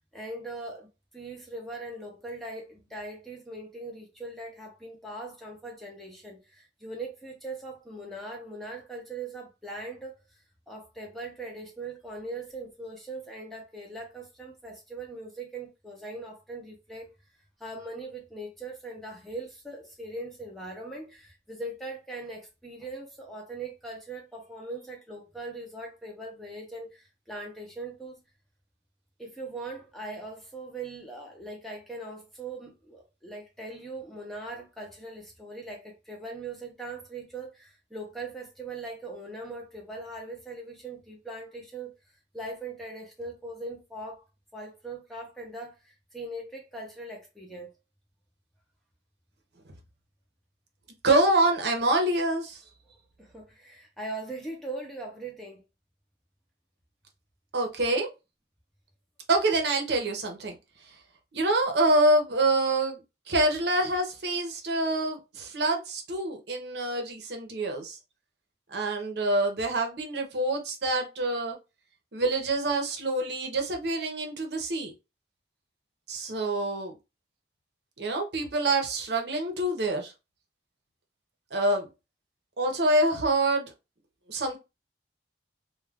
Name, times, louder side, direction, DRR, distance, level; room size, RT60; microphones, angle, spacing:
voice 1, 0.1-17.1 17.6-28.2 29.2-41.9 42.3-44.2 44.5-47.7 53.2-55.6, right 2 dB, ahead, 0.5 m, -40 dB
voice 2, 51.0-52.6 57.5-58.1 59.3-60.5 61.3-63.0 63.3-68.0 68.7-71.6 72.1-74.9 76.1-77.0 78.0-80.1 81.5-81.9 82.6-83.7 84.3-84.6, right 2 dB, 70° right, 0.8 m, -26 dB
2.3 x 2.3 x 3.4 m
head